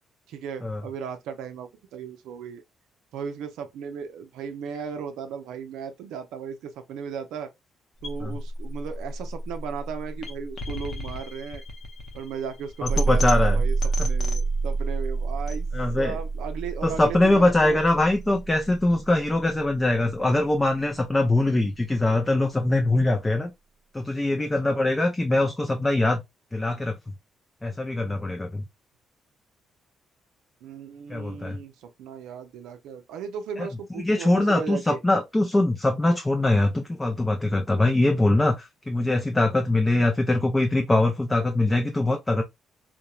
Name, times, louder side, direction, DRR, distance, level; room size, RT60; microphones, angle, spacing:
voice 1, 0.3-2.6 3.1-7.5 8.0-11.6 12.1-13.7 14.0-15.7 16.0-17.8 24.6-24.8 30.6-35.0, right 7 dB, 90° right, 0.4 m, -36 dB
sound 1, 8.0-20.0, right 3 dB, 60° left, 0.6 m, -29 dB
voice 2, 12.8-13.6 14.0-14.1 15.7-16.2 16.8-23.5 23.9-26.2 26.5-27.1 27.6-28.6 31.1-31.6 33.6-33.7 34.0-42.4, left 2 dB, 15° left, 0.4 m, -23 dB
2.9 x 2.1 x 2.3 m
cardioid pair, 90°, 0 cm